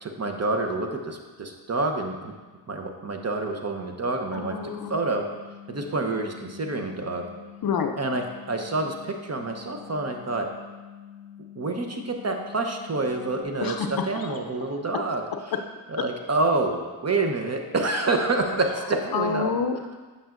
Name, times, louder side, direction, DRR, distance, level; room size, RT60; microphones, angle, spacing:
voice 1, 0.0-2.3 2.7-4.6 4.9-5.2 5.7-7.2 8.0-10.5 11.6-15.2 15.9-19.5, right 2 dB, 35° right, 4 dB, 0.9 m, -27 dB
voice 2, 4.3-4.9 7.6-7.9 13.6-14.0 19.1-20.0, left 6 dB, 50° left, 6 dB, 0.6 m, -27 dB
sound 1, 4.4-13.4, left 9 dB, 15° right, 1.2 m, -46 dB
8.8 x 5.6 x 2.5 m, 1.4 s
cardioid pair, 60°, 45 cm